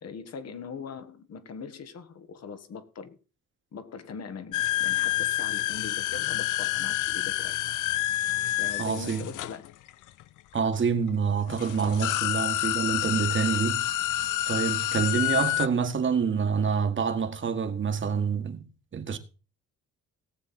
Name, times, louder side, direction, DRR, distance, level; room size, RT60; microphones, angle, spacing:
voice 1, 0.0-3.2 3.7-7.5 8.5-9.6, left 5 dB, 55° left, 1.7 m, -41 dB
sound 1, 4.5-10.2 11.1-11.2 11.5-15.7, left 15 dB, 80° left, 0.6 m, -28 dB
voice 2, 8.8-9.3 10.5-13.8 14.5-18.7 18.9-19.2, right 6 dB, 40° right, 1.7 m, -27 dB
17.5 x 7.5 x 4.3 m
cardioid pair, 90°, 30 cm